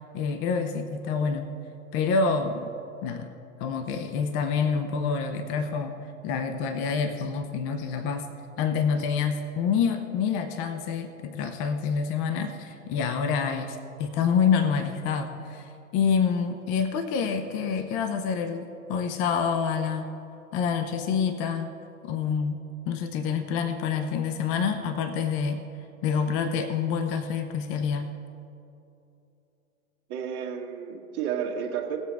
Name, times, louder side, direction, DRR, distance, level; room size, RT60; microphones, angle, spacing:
voice 1, 0.1-1.5 1.9-2.7 3.0-3.3 3.6-6.0 6.2-8.3 8.6-20.1 20.5-21.7 22.0-25.6 26.0-28.1, left 6 dB, 30° left, 9 dB, 0.6 m, -27 dB
voice 2, 30.1-32.0, right 8 dB, 35° right, 0 dB, 1.8 m, -31 dB
18.5 x 7.7 x 3.5 m, 2.8 s
hypercardioid pair, 120°, 43 cm